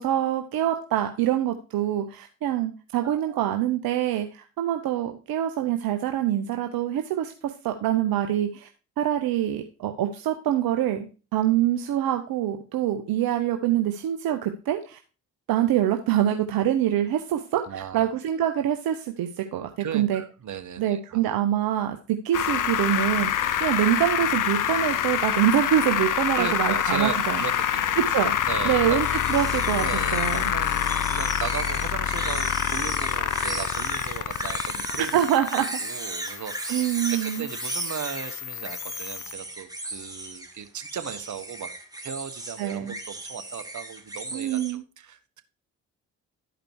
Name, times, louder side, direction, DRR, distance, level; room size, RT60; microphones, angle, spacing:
voice 1, 0.0-8.7 9.0-15.0 15.5-20.2 20.8-27.4 28.0-28.4 28.6-29.8 30.1-30.4 35.0-35.7 36.7-37.5 42.6-42.9 44.3-44.8, right 11 dB, 70° right, 6 dB, 0.9 m, -25 dB
voice 2, 3.0-3.5 17.7-18.0 19.8-21.3 23.4-23.6 26.3-28.0 28.5-29.0 29.8-30.2 30.5-35.2 35.6-41.7 42.0-45.4, right 8 dB, 50° right, 9 dB, 1.4 m, -37 dB
sound 1, 22.3-39.3, left 10 dB, 55° left, 0.8 m, -27 dB
sound 2, 28.8-44.7, right 2 dB, 10° right, 2.3 m, -36 dB
12.0 x 5.0 x 4.7 m, 0.35 s
hypercardioid pair, 45°, 37 cm